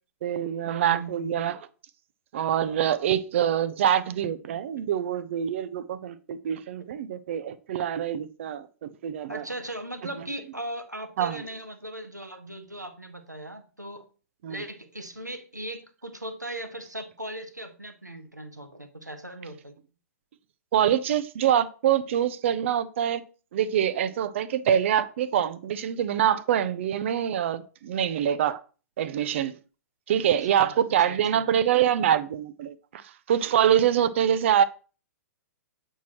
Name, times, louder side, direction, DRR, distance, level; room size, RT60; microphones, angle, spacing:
voice 1, 0.2-1.6 2.3-9.4 11.2-11.4 14.4-14.6 20.7-23.2 23.5-28.6 29.0-29.5 30.1-33.0 33.3-34.6, right 9 dB, 45° right, 0.4 m, -25 dB
voice 2, 0.8-1.5 9.2-14.0 14.5-19.8 30.5-30.8 31.0-31.4, right 1 dB, 90° right, 1.0 m, -38 dB
8.1 x 4.4 x 3.0 m
figure-of-eight pair, 110°, 9 cm